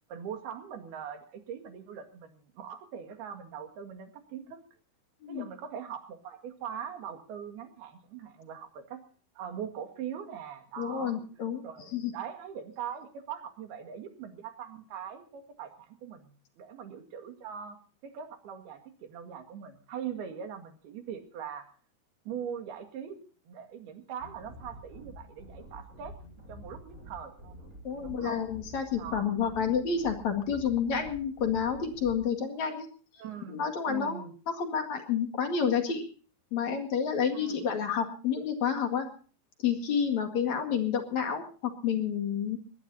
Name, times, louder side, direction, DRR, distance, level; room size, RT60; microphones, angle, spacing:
voice 1, 0.1-4.6 5.3-9.0 9.4-11.2 11.6-21.7 22.3-23.2 23.5-26.1 26.5-27.6 28.0-28.4 28.9-29.4 33.2-34.3 37.3-37.6, right 8 dB, 90° right, 5 dB, 4.0 m, -41 dB
voice 2, 10.8-11.6 11.9-12.1 27.8-32.9 33.5-36.1 36.5-39.1 39.6-42.6, left 7 dB, 55° left, 6 dB, 3.1 m, -29 dB
sound 1, 24.2-32.2, equal, 20° right, 7.6 m, -48 dB
21.0 x 19.5 x 2.8 m, 0.39 s
omnidirectional pair, 4.3 m